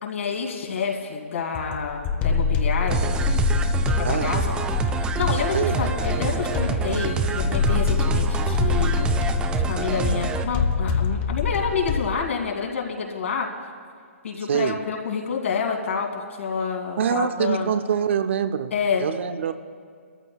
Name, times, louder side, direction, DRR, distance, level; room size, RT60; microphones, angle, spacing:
voice 1, 0.0-3.0 4.0-4.5 5.0-9.0 9.6-13.5 14.2-17.7 18.7-19.1, left 6 dB, 70° left, -1 dB, 2.6 m, -28 dB
sound 1, 1.5-12.2, left 5 dB, 20° left, 0.7 m, -25 dB
sound 2, 2.9-10.4, right 4 dB, 10° right, 0.5 m, -26 dB
voice 2, 14.5-14.8 17.0-18.7 19.0-19.5, right 8 dB, 60° right, 11 dB, 0.6 m, -24 dB
22.5 x 14.0 x 2.3 m, 2.1 s
hypercardioid pair, 145°, 7 cm